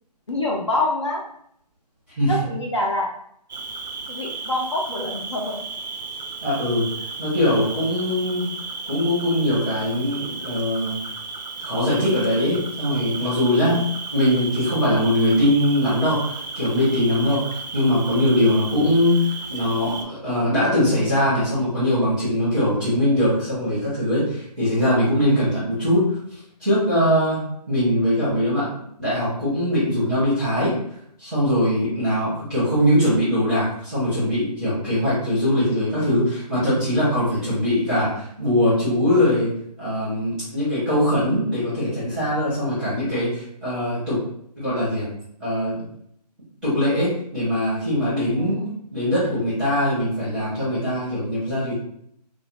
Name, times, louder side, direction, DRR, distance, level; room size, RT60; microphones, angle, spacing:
voice 1, 0.3-1.2 2.3-3.1 4.1-5.6 48.4-48.7, left 2 dB, 45° left, -2 dB, 0.4 m, -26 dB
Cricket, 3.5-20.0, right 4 dB, 85° right, 0.5 m, -34 dB
voice 2, 6.4-6.9 7.2-8.5 8.9-11.0 11.6-13.8 14.1-26.2 26.6-28.7 29.0-30.7 31.2-39.5 39.8-44.2 44.6-45.1 45.4-45.9 46.6-48.6 48.9-51.7, left 1 dB, 5° right, -13 dB, 0.7 m, -21 dB
2.4 x 2.0 x 2.9 m, 0.70 s
hypercardioid pair, 170°, 21 cm